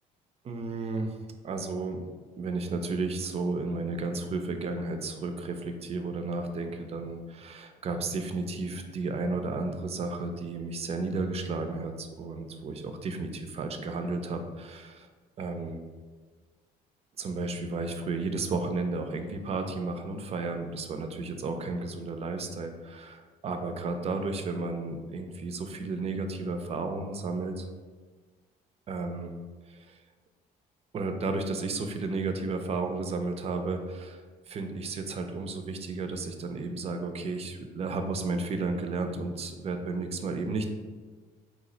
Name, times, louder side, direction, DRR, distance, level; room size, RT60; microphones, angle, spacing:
voice 1, 0.4-1.2 1.4-2.0 2.4-15.1 15.4-15.8 17.2-27.7 28.9-29.3 29.7-30.0 30.9-34.2 34.5-40.7, right 3 dB, 40° right, 6 dB, 0.4 m, -33 dB
3.0 x 2.3 x 3.8 m, 1.4 s
cardioid pair, 110°, 17 cm